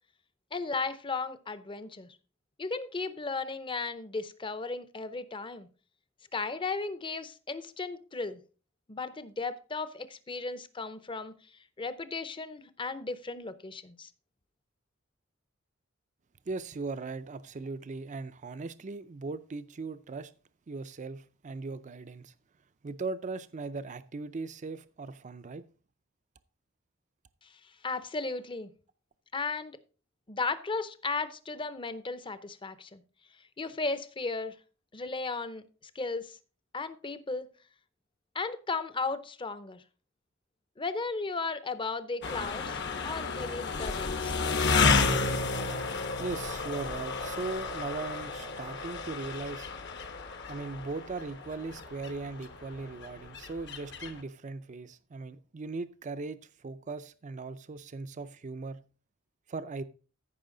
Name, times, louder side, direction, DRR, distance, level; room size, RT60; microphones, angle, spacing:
voice 1, 0.5-2.2 2.6-5.7 6.3-8.4 8.9-11.3 11.8-14.1 27.4-27.5 27.8-28.7 29.3-29.8 30.3-33.0 33.6-34.6 34.9-35.6 35.9-36.4 36.7-37.5 38.3-39.8 40.8-44.4, left 3 dB, 25° left, 0.7 m, -35 dB
voice 2, 16.5-20.3 20.7-22.3 22.8-25.6 46.2-49.7 50.5-58.8 59.5-59.8, right 3 dB, 35° right, 0.4 m, -38 dB
sound 1, 42.2-54.2, left 4 dB, 60° left, 1.0 m, -32 dB
14.0 x 5.5 x 3.8 m
head